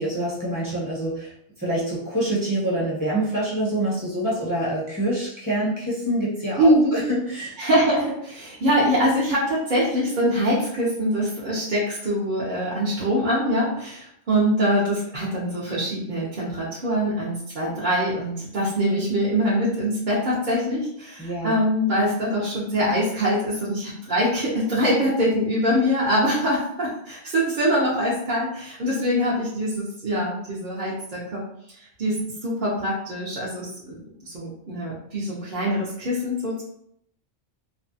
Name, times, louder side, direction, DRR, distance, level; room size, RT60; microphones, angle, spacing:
voice 1, 0.0-7.6 21.2-21.5, right 1 dB, 20° right, -7 dB, 0.9 m, -26 dB
voice 2, 6.6-7.0 7.6-31.4 32.0-36.6, equal, 50° right, -7 dB, 0.8 m, -23 dB
2.7 x 2.2 x 2.6 m, 0.70 s
omnidirectional pair, 1.1 m